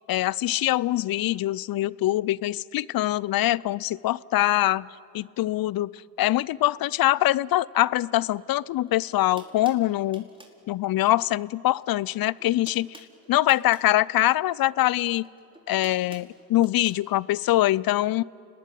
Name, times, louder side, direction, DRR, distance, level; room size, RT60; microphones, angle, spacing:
voice 1, 0.1-4.9 5.1-5.9 6.2-10.3 10.7-13.0 13.3-15.3 15.7-18.2, left 15 dB, 65° left, 23 dB, 0.6 m, -23 dB
sound 1, 8.9-9.0 9.4-10.6 11.8-12.1 12.4-13.9 15.1-17.0, right 1 dB, 15° right, 4.4 m, -50 dB
29.5 x 20.0 x 9.1 m, 2.5 s
supercardioid pair, 45°, 37 cm